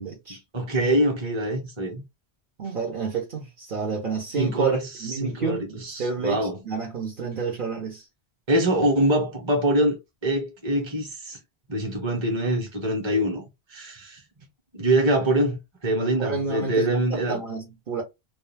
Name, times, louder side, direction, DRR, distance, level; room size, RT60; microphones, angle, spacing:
voice 1, 0.0-0.4 2.6-8.0 16.2-18.0, right 5 dB, 55° right, 1.0 m, -30 dB
voice 2, 0.5-2.0 4.3-4.8 5.2-6.6 8.5-10.0 10.2-11.4 11.7-13.4 13.7-14.2 14.7-17.4, right 1 dB, 30° right, 0.9 m, -24 dB
2.4 x 2.3 x 3.2 m
omnidirectional pair, 1.1 m